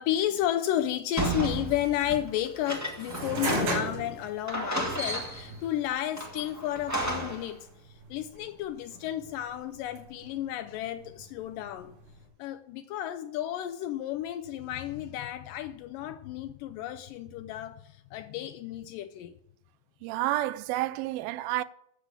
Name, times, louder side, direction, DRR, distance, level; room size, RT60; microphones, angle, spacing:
voice 1, 0.0-11.9 12.4-19.3, left 12 dB, 80° left, 2.0 m, -32 dB
sound 1, 1.2-3.9 4.2-4.3 4.5-5.6 6.2-7.5, right 1 dB, 10° right, 0.8 m, -33 dB
sound 2, 3.1-12.3, right 1 dB, 65° right, 5.4 m, -38 dB
voice 2, 20.0-21.6, right 15 dB, 85° right, 2.4 m, -30 dB
10.0 x 7.4 x 7.9 m
omnidirectional pair, 4.2 m